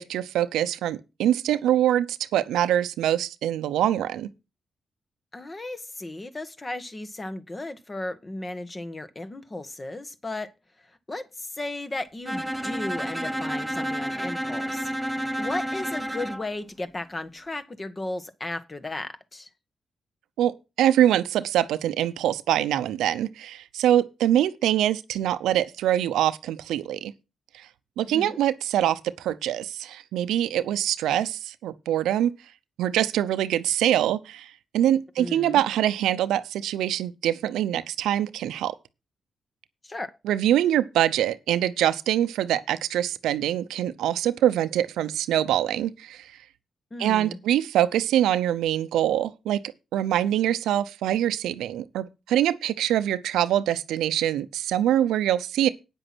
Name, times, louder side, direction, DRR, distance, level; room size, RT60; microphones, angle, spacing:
voice 1, 0.0-4.3 20.4-20.5 20.8-27.1 27.5-27.7 28.0-32.3 32.8-38.7 40.2-46.3 47.0-49.6 49.9-55.7, right 11 dB, 90° right, 0.6 m, -24 dB
voice 2, 5.3-10.5 10.8-19.5 28.1-28.4 35.2-35.6 39.8-40.1 46.9-47.4, left 2 dB, 30° left, 1.7 m, -35 dB
Bowed string instrument, 12.3-16.5, equal, 5° right, 0.9 m, -30 dB
9.2 x 7.8 x 6.1 m
supercardioid pair, 50°, 0 cm